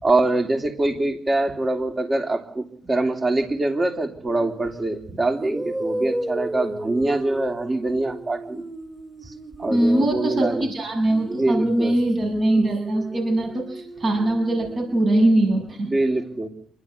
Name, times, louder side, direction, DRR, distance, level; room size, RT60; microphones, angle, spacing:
voice 1, 0.0-8.6 9.3-9.4 9.6-10.7 11.3-12.0 15.9-16.5, right 2 dB, 25° right, 6 dB, 3.2 m, -24 dB
sound 1, 4.3-4.5 5.3-10.7 11.1-15.0, right 1 dB, 10° right, 3.2 m, -34 dB
voice 2, 9.7-15.9, right 1 dB, 45° right, 3 dB, 7.1 m, -21 dB
27.5 x 12.0 x 9.6 m, 0.64 s
cardioid pair, 90°, 0 cm